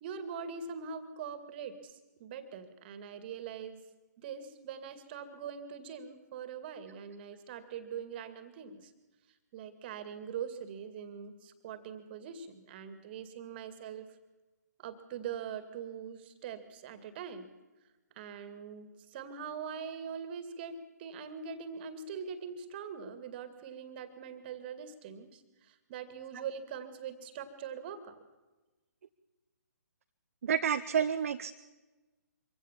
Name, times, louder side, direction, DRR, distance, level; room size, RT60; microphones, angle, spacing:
voice 1, 0.0-3.8 4.2-8.9 9.5-14.1 14.8-17.5 18.2-28.2, right 7 dB, 35° right, 11 dB, 2.3 m, -42 dB
voice 2, 30.4-31.5, right 7 dB, 50° right, 7 dB, 0.9 m, -29 dB
24.5 x 16.5 x 7.3 m, 1.1 s
figure-of-eight pair, 135°, 9 cm